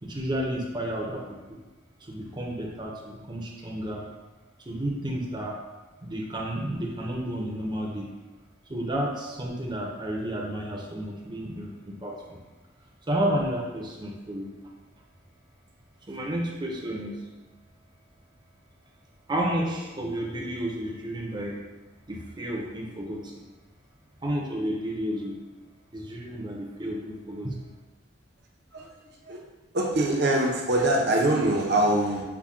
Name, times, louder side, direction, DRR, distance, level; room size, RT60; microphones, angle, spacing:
voice 1, 0.0-1.6 2.0-4.0 4.6-5.6 6.0-8.1 8.7-12.4 13.1-14.5 16.1-17.2 19.3-21.6 22.1-23.4 24.2-25.4 25.9-27.7, right 1 dB, 25° right, -1 dB, 0.6 m, -31 dB
voice 2, 29.7-32.2, right 1 dB, 55° right, 0 dB, 0.7 m, -23 dB
5.7 x 2.2 x 3.6 m, 1.2 s
head